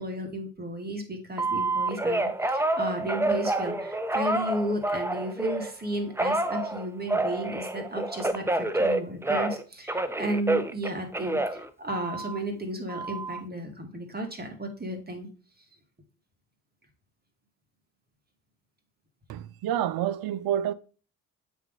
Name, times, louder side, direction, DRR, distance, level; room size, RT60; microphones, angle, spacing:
voice 1, 0.0-15.3, right 1 dB, 20° right, 2.3 m, -34 dB
Telephone, 1.4-5.7 6.2-9.6 9.9-12.4 12.9-13.4, right 2 dB, 5° right, 0.6 m, -28 dB
voice 2, 19.3-20.7, right 11 dB, 55° right, 0.6 m, -28 dB
8.1 x 3.5 x 3.3 m
hypercardioid pair, 50°, 44 cm